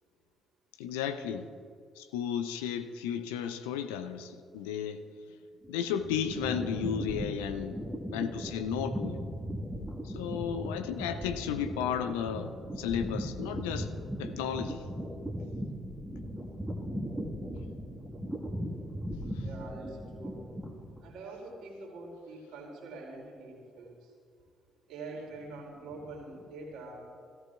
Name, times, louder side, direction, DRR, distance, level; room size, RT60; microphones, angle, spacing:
voice 1, 0.8-1.5 2.0-5.0 5.7-7.8 8.1-9.2 10.0-13.9 14.2-14.8, left 8 dB, 75° left, 10 dB, 0.5 m, -34 dB
sound 1, 5.6-21.1, equal, 10° right, 1.6 m, -38 dB
voice 2, 19.4-20.5 21.0-24.1 24.9-27.1, right 2 dB, 65° right, -1 dB, 2.7 m, -44 dB
16.0 x 14.0 x 2.4 m, 2.2 s
figure-of-eight pair, 45°, 0 cm